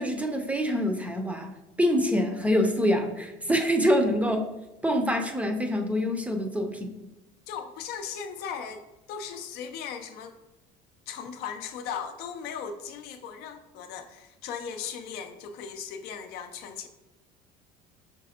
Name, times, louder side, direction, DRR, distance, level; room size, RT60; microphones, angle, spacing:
voice 1, 0.0-1.5 1.8-4.5 4.8-6.9, equal, 10° right, 4 dB, 0.5 m, -25 dB
voice 2, 7.5-10.4 11.1-16.9, left 7 dB, 70° left, 7 dB, 0.5 m, -37 dB
5.1 x 3.1 x 2.8 m, 0.99 s
cardioid pair, 115°, 17 cm